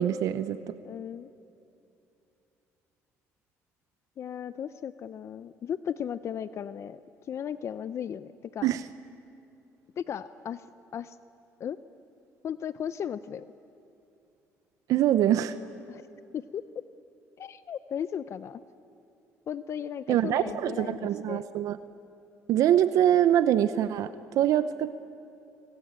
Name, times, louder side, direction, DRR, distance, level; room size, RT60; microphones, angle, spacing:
voice 1, 0.0-0.8 8.6-8.8 14.9-15.6 20.1-21.8 22.5-24.9, right 11 dB, 75° right, 13 dB, 0.8 m, -24 dB
voice 2, 0.8-1.3 4.2-7.0 7.3-8.7 10.0-10.6 10.9-11.2 11.6-11.8 12.4-13.4 15.9-16.0 16.3-16.6 17.4-18.6 19.5-21.4, left 8 dB, 50° left, 14 dB, 0.7 m, -36 dB
26.5 x 24.5 x 8.9 m, 2.7 s
cardioid pair, 100°, 6 cm